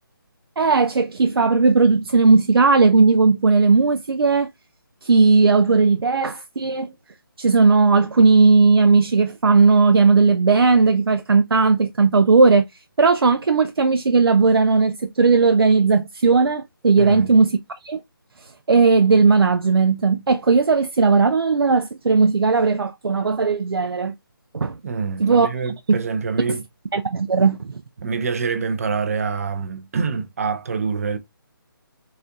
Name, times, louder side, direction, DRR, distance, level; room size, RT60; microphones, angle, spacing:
voice 1, 0.6-4.5 5.0-6.9 7.4-12.7 13.0-17.6 17.8-18.0 18.7-24.1 24.5-24.8 25.2-25.5 25.9-26.0 26.5-26.6 26.9-27.8, right 4 dB, 85° right, 0.4 m, -16 dB
voice 2, 17.0-17.3 24.8-26.6 28.0-31.2, right 5 dB, 40° right, 0.6 m, -26 dB
4.1 x 2.5 x 2.3 m
figure-of-eight pair, 160°, 12 cm